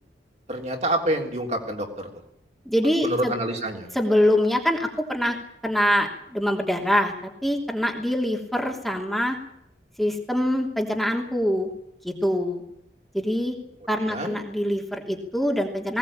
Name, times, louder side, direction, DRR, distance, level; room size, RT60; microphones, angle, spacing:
voice 1, 0.5-2.1 3.0-3.9 14.1-14.4, right 1 dB, 40° right, 3 dB, 3.5 m, -27 dB
voice 2, 2.6-3.3 3.9-5.3 5.6-9.4 10.0-11.7 12.0-12.6 13.1-13.6 13.9-16.0, equal, ahead, 1 dB, 3.0 m, -24 dB
20.0 x 18.5 x 8.8 m, 0.75 s
head